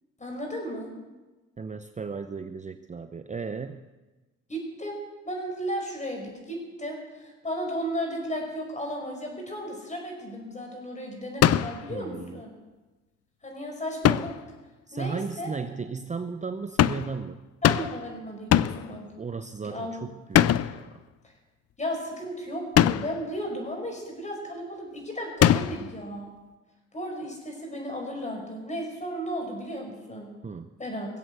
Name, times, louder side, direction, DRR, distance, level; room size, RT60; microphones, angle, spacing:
voice 1, 0.2-0.9 4.5-5.0 5.2-12.5 13.4-14.3 14.9-15.5 17.6-19.0 19.6-19.9 21.8-26.3 26.9-30.3 30.8-31.1, equal, 25° left, 1 dB, 5.3 m, -34 dB
voice 2, 1.6-3.8 11.9-12.4 14.9-17.4 19.1-20.5 20.7-21.0 30.4-30.7, right 5 dB, 25° right, 9 dB, 0.7 m, -35 dB
sound 1, 11.4-11.9 14.0-14.5 16.8-17.2 17.6-18.1 18.5-18.9 20.3-20.8 22.8-23.2 25.4-25.9, left 11 dB, 55° left, 0.5 m, -21 dB
20.0 x 7.9 x 8.0 m, 1.2 s
cardioid pair, 90°, 30 cm